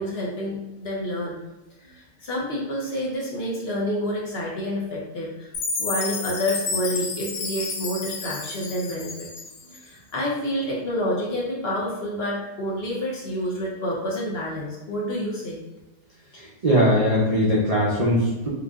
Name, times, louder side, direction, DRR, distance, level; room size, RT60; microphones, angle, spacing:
voice 1, 0.0-1.4 2.2-5.5 5.8-9.3 9.7-15.6, equal, 50° left, -4 dB, 0.8 m, -28 dB
Chime, 5.5-9.8, left 4 dB, 85° left, 1.2 m, -31 dB
voice 2, 16.3-18.5, equal, 65° right, -5 dB, 0.3 m, -20 dB
4.8 x 2.5 x 2.4 m, 1.0 s
omnidirectional pair, 1.7 m